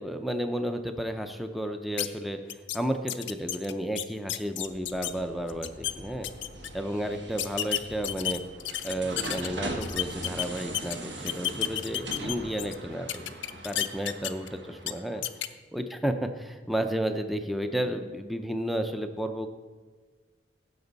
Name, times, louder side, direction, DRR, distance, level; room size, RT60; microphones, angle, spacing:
voice 1, 0.0-2.4 2.7-6.3 6.7-8.4 8.8-13.4 13.6-19.5, equal, ahead, 6 dB, 0.5 m, -32 dB
sound 1, 2.0-2.1 2.5-2.8 3.1-5.1 5.5-5.9 6.2-6.7 7.4-9.5 9.8-11.0 11.3-12.7 13.1-14.5 14.8-14.9 15.2-15.5, left 12 dB, 80° left, 0.5 m, -31 dB
sound 2, 4.6-15.3, right 1 dB, 70° right, 1.4 m, -41 dB
15.5 x 7.0 x 4.0 m, 1.4 s
head